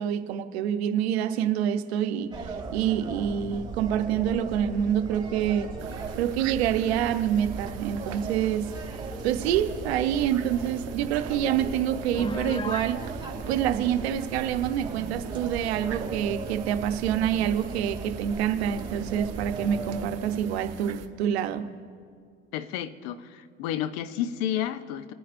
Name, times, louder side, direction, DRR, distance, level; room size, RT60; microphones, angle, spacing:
voice 1, 0.0-5.7 6.2-8.7 9.2-13.1 13.5-21.7, right 9 dB, 90° right, 9 dB, 0.8 m, -27 dB
sound 1, 2.3-20.1, right 3 dB, 15° right, 2.4 m, -38 dB
sound 2, 5.8-21.1, right 9 dB, 55° right, 0.9 m, -42 dB
Piano, 12.1-13.0, left 3 dB, 15° left, 0.5 m, -34 dB
voice 2, 22.5-25.1, left 11 dB, 75° left, 13 dB, 0.7 m, -31 dB
28.5 x 9.8 x 2.6 m, 2.1 s
supercardioid pair, 85°, 31 cm